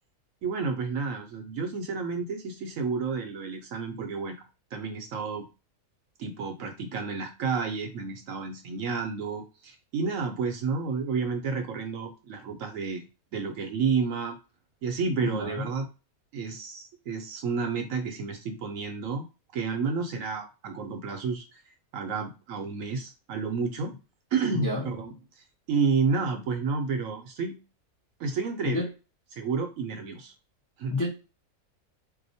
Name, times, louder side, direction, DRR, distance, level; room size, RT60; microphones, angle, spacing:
voice 1, 0.4-4.4 4.7-5.5 6.2-13.1 13.3-14.4 14.8-15.9 16.3-19.3 19.5-21.6 21.9-23.9 24.3-25.1 25.7-27.6 28.2-28.8 29.3-30.3 30.8-31.0, right 5 dB, 70° right, 5 dB, 0.9 m, -30 dB
voice 2, 15.2-15.7 24.5-24.9 28.6-28.9 30.9-31.1, left 2 dB, 20° left, -4 dB, 0.5 m, -29 dB
2.8 x 2.1 x 4.0 m, 0.30 s
omnidirectional pair, 1.6 m